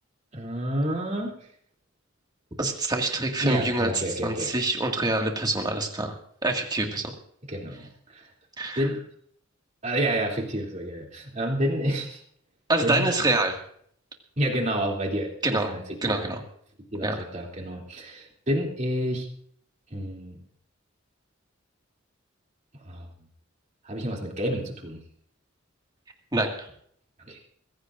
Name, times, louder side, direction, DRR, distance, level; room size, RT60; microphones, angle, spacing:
voice 1, 0.3-1.3 3.4-4.5 7.5-8.3 8.8-9.0 9.8-12.2 12.8-13.1 14.4-15.8 16.1-16.3 16.9-19.3 19.9-20.4 22.8-23.1 23.8-25.0 27.3-27.4, equal, 35° right, 0 dB, 2.9 m, -29 dB
voice 2, 2.6-6.1 6.4-7.1 8.6-8.9 12.7-13.6 15.4-15.7 16.0-16.4 17.0-17.1 26.3-26.7, right 2 dB, 20° right, 2 dB, 1.9 m, -26 dB
24.0 x 16.0 x 2.5 m, 0.64 s
head